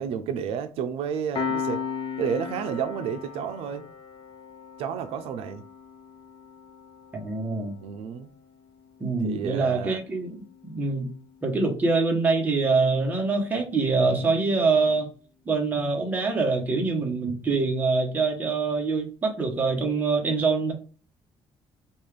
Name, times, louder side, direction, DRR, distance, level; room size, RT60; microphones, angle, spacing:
voice 1, 0.0-1.8 2.2-3.9 4.8-5.6 7.8-8.3 9.2-10.0, right 7 dB, 75° right, 0.4 m, -31 dB
Piano, 1.3-12.4, left 6 dB, 50° left, 0.6 m, -38 dB
voice 2, 7.1-7.7 9.0-11.1 11.4-15.1 15.5-20.7, right 4 dB, 15° right, 0.9 m, -24 dB
5.3 x 2.4 x 3.2 m
cardioid pair, 170°, 10 cm